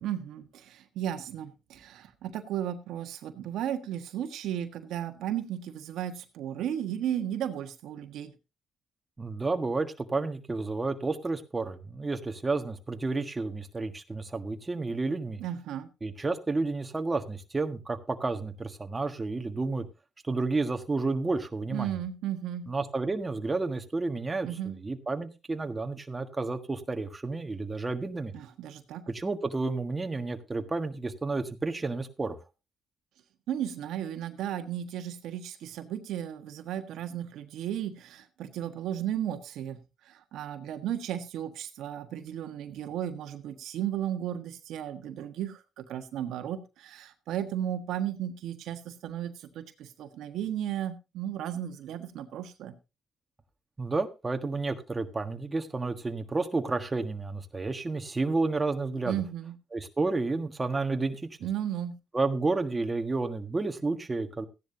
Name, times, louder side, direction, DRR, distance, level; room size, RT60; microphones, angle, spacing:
voice 1, 0.0-8.3 15.4-15.9 21.7-22.7 24.4-24.7 28.3-29.0 33.5-39.8 40.1-52.7 59.1-59.5 61.4-61.9, right 10 dB, 85° right, 6 dB, 1.4 m, -34 dB
voice 2, 9.2-15.4 16.0-19.8 20.2-22.0 22.7-24.5 24.8-28.3 29.1-32.4 53.8-59.2 59.7-61.3 62.1-64.5, right 3 dB, 20° right, 6 dB, 1.5 m, -31 dB
15.0 x 10.5 x 2.8 m, 0.27 s
cardioid pair, 90°, 0 cm